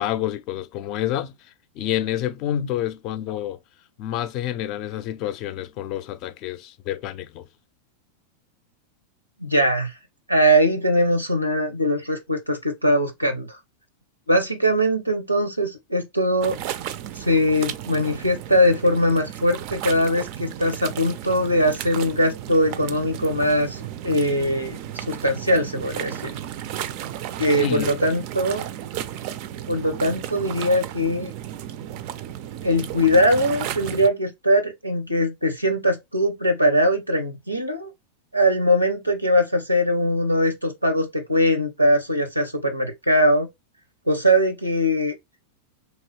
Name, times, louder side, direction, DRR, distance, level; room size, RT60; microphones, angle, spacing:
voice 1, 0.0-1.3 1.8-3.6 4.0-7.4 27.4-28.0, left 11 dB, 40° left, 0.4 m, -28 dB
voice 2, 9.4-9.9 10.3-13.6 14.3-16.6 17.2-26.3 27.4-28.7 29.7-31.3 32.6-37.9 38.3-43.5 44.1-45.1, equal, 90° right, 0.6 m, -21 dB
sound 1, 16.4-34.1, right 11 dB, 45° right, 0.3 m, -34 dB
2.9 x 2.7 x 3.1 m
figure-of-eight pair, 90°, 0 cm